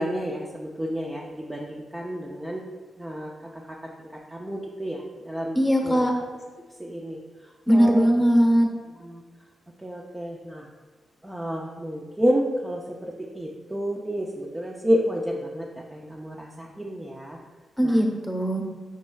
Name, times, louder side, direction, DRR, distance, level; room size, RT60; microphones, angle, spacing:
voice 1, 0.0-2.6 3.0-3.8 4.3-6.1 6.8-7.2 7.7-8.1 9.0-9.2 9.8-10.7 11.2-15.7 15.9-17.4 17.8-18.0, equal, 10° right, -2 dB, 0.5 m, -30 dB
voice 2, 5.5-6.1 7.7-8.7 17.8-18.6, equal, 5° left, 1 dB, 0.9 m, -20 dB
9.3 x 5.3 x 2.3 m, 1.4 s
wide cardioid pair, 145°, 0 cm